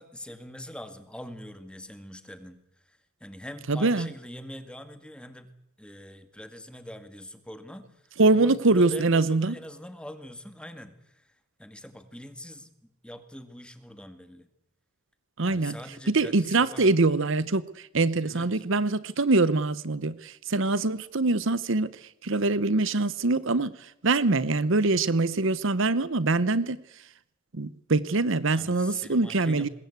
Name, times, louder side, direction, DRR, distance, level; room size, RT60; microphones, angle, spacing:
voice 1, 0.0-5.5 5.8-11.3 11.6-14.5 15.4-16.9 18.3-18.6 28.5-29.7, left 1 dB, 5° left, 9 dB, 2.1 m, -43 dB
voice 2, 3.7-4.1 8.2-9.6 15.4-15.8 16.1-26.8 27.5-29.7, right 3 dB, 65° right, 17 dB, 0.9 m, -24 dB
25.5 x 21.0 x 8.2 m, 0.82 s
head